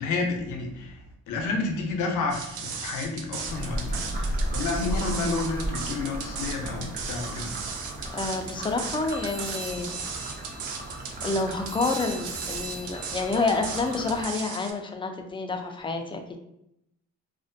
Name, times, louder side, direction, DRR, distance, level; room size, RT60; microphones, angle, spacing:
voice 1, 0.0-7.5, left 3 dB, 90° left, 2 dB, 0.6 m, -30 dB
sound 1, 2.3-14.7, right 6 dB, 80° right, 0.5 m, -36 dB
sound 2, 3.5-14.3, right 1 dB, 30° right, 0.6 m, -35 dB
voice 2, 8.1-9.9 11.2-16.4, left 3 dB, 15° left, 4 dB, 0.3 m, -28 dB
sound 3, 9.1-14.5, right 2 dB, 60° right, 1.1 m, -43 dB
2.4 x 2.1 x 2.5 m, 0.80 s
cardioid pair, 90°, 30 cm